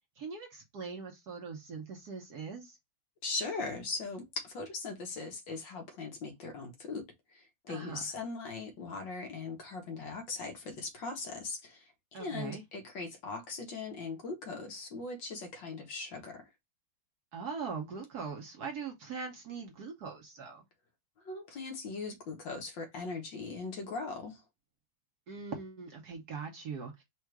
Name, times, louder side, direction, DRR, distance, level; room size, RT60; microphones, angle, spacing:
voice 1, 0.2-2.8 7.7-8.0 12.1-12.6 17.3-20.6 25.3-27.0, right 5 dB, 60° right, 1.2 m, -41 dB
voice 2, 3.2-7.1 7.3-11.9 12.2-16.5 21.2-24.4, left 3 dB, 65° left, 1.8 m, -39 dB
4.5 x 2.5 x 4.6 m
omnidirectional pair, 2.3 m